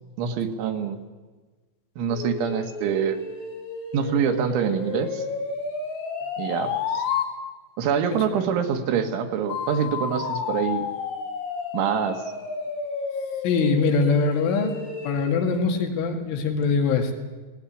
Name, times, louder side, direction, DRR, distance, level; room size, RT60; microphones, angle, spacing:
voice 1, 0.2-1.0 2.0-3.2 3.9-5.3 6.4-7.0 7.8-10.9 11.7-12.3, right 7 dB, 75° right, 7 dB, 3.7 m, -25 dB
sound 1, 2.1-7.3 9.5-15.3, left 5 dB, 50° left, 5.1 m, -31 dB
voice 2, 13.4-14.7 15.0-17.2, left 4 dB, 75° left, 4 dB, 4.5 m, -23 dB
19.0 x 18.0 x 10.0 m, 1.3 s
omnidirectional pair, 5.6 m